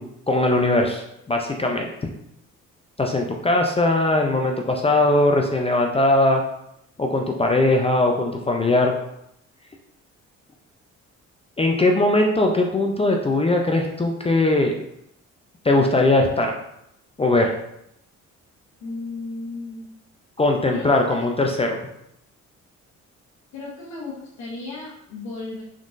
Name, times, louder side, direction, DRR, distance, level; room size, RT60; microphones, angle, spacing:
voice 1, 0.0-1.9 3.0-6.4 7.0-8.9 11.6-14.7 15.6-16.5 17.2-17.5 20.4-21.8, left 2 dB, 20° left, 2 dB, 0.4 m, -20 dB
voice 2, 18.8-19.8 20.7-21.2 23.5-25.6, left 3 dB, 65° left, -5 dB, 1.0 m, -34 dB
3.7 x 3.7 x 2.5 m, 0.78 s
cardioid pair, 90°, 30 cm